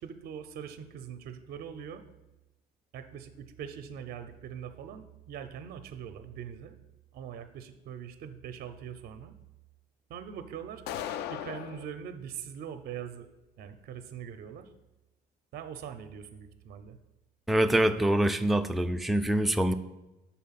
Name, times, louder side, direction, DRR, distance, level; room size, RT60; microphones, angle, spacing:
voice 1, 0.0-2.0 2.9-6.8 7.1-9.3 10.1-10.8 11.3-13.3 13.6-14.7 15.5-17.0, right 8 dB, 65° right, 9 dB, 0.5 m, -42 dB
sound 1, 10.9-11.9, left 10 dB, 80° left, 0.4 m, -36 dB
voice 2, 17.5-19.7, right 1 dB, ahead, 7 dB, 0.3 m, -25 dB
5.7 x 4.2 x 5.7 m, 1.0 s
cardioid pair, 110°, 17 cm